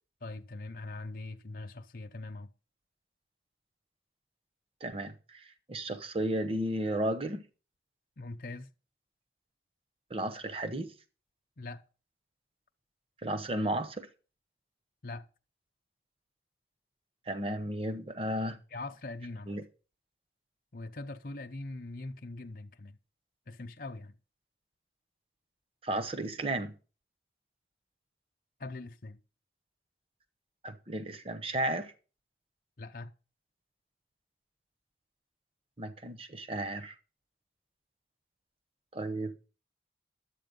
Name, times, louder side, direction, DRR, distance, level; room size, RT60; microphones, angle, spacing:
voice 1, 0.2-2.5 8.2-8.7 11.6-11.8 15.0-15.3 18.7-19.6 20.7-23.0 23.5-24.2 28.6-29.2 32.8-33.1, left 2 dB, 50° left, 0.7 m, -42 dB
voice 2, 4.8-7.4 10.1-10.9 13.2-14.1 17.3-18.6 19.5-19.6 25.8-26.7 30.6-31.9 35.8-36.9 38.9-39.5, right 1 dB, 30° right, 0.9 m, -34 dB
12.0 x 8.4 x 5.3 m
head